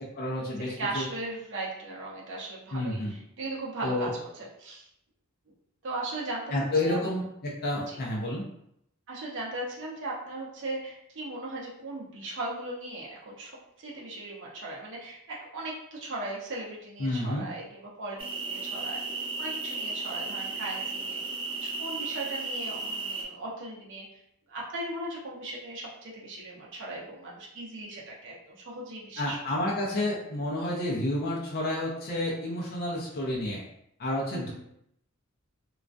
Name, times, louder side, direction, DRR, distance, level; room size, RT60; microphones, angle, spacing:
voice 1, 0.2-1.1 2.7-3.1 3.8-4.1 6.5-8.4 17.0-17.5 29.2-33.6 34.0-34.5, left 1 dB, 45° left, -4 dB, 0.5 m, -30 dB
voice 2, 0.8-4.1 4.4-4.8 5.8-6.5 6.8-7.1 9.1-13.5 13.8-18.2 18.5-19.0 19.4-21.2 21.6-24.1 24.5-29.4 34.3-34.5, right 2 dB, 60° right, -4 dB, 0.7 m, -37 dB
sound 1, 18.2-23.2, right 3 dB, 25° right, 0.3 m, -34 dB
2.3 x 2.2 x 2.4 m, 0.76 s
head